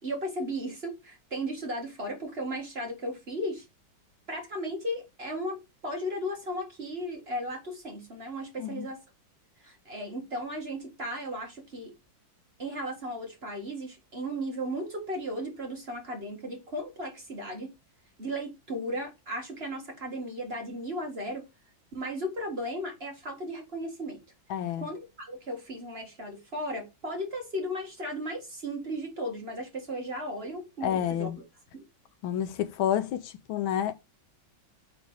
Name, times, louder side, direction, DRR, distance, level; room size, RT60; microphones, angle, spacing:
voice 1, 0.0-3.6 4.3-9.0 9.6-11.9 12.6-17.7 18.2-21.4 21.9-24.2 24.8-31.3 31.7-31.8, equal, 30° right, 1.9 m, -35 dB
voice 2, 24.5-24.9 30.8-31.4 32.2-33.9, left 10 dB, 85° left, 1.6 m, -29 dB
5.2 x 4.0 x 4.8 m
omnidirectional pair, 2.2 m